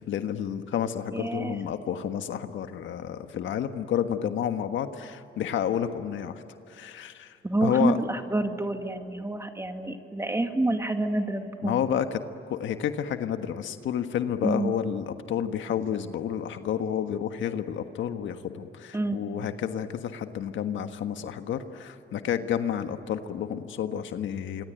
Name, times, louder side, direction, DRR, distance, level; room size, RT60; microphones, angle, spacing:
voice 1, 0.0-6.4 6.7-7.3 7.6-8.0 11.6-12.2 12.5-24.6, left 9 dB, 75° left, 8 dB, 1.5 m, -30 dB
voice 2, 1.1-1.6 7.4-11.8 14.4-14.7 18.9-19.5, right 2 dB, 15° right, 6 dB, 2.2 m, -28 dB
26.0 x 25.0 x 9.1 m, 3.0 s
cardioid pair, 90°, 20 cm